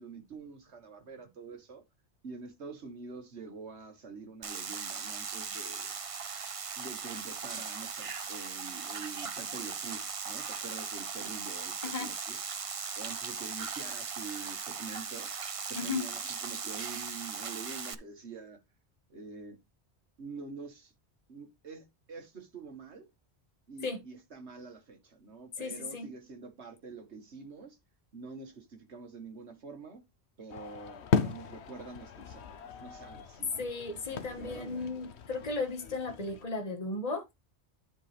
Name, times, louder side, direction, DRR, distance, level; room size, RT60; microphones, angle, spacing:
voice 1, 0.0-1.8 2.2-6.0 6.8-12.4 13.0-15.3 15.7-18.6 19.1-19.6 20.2-20.9 21.3-23.1 23.7-27.8 28.1-30.0 30.4-33.7 34.2-35.0, right 4 dB, 75° right, 1.9 m, -46 dB
sound 1, 4.4-17.9, right 6 dB, 35° right, 0.6 m, -38 dB
voice 2, 25.6-26.1 33.6-37.2, left 3 dB, 35° left, 1.7 m, -35 dB
sound 2, 30.5-36.4, left 6 dB, 70° left, 1.1 m, -36 dB
10.0 x 5.4 x 3.4 m
omnidirectional pair, 1.1 m